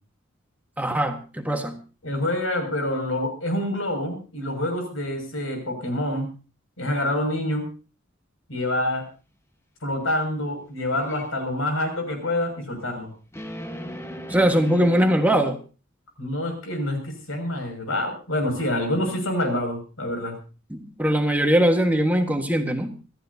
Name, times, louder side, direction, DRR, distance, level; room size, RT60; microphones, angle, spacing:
voice 1, 0.8-1.8 14.3-15.6 20.7-22.9, right 1 dB, 10° right, 4 dB, 1.5 m, -21 dB
voice 2, 2.0-6.3 6.8-7.7 8.5-9.1 9.8-13.1 16.2-20.4, left 1 dB, 90° left, 4 dB, 6.4 m, -27 dB
sound 1, 10.9-11.3 13.3-15.3, equal, 15° left, 1.3 m, -37 dB
26.0 x 14.0 x 2.8 m, 0.34 s
head